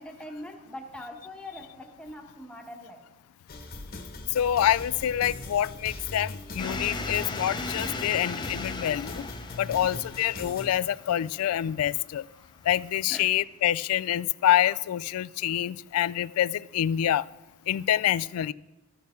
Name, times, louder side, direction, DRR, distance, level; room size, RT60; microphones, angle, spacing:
voice 1, 0.0-3.0 9.8-10.1 13.1-13.3, left 1 dB, 5° left, 2 dB, 1.1 m, -42 dB
sound 1, 3.5-10.7, left 2 dB, 45° left, 1.0 m, -40 dB
voice 2, 4.3-9.3 9.6-12.2 12.6-17.3 17.7-18.5, left 11 dB, 90° left, 18 dB, 0.3 m, -26 dB
sound 2, 6.6-13.0, left 3 dB, 20° left, 0.6 m, -38 dB
13.0 x 7.4 x 4.3 m, 1.0 s
head